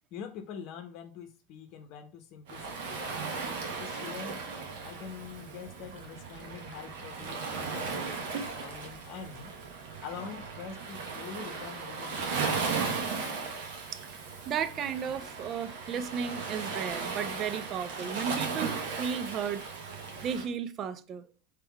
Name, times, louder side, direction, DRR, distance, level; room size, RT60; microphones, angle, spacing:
voice 1, 0.1-4.4 4.8-9.5 10.0-13.0, left 7 dB, 55° left, 0.8 m, -45 dB
Waves surf, 2.5-20.5, right 4 dB, 65° right, 1.1 m, -36 dB
voice 2, 14.5-19.6 20.2-21.2, right 7 dB, 40° right, 0.5 m, -34 dB
3.5 x 3.3 x 4.6 m
hypercardioid pair, 90°, 0 cm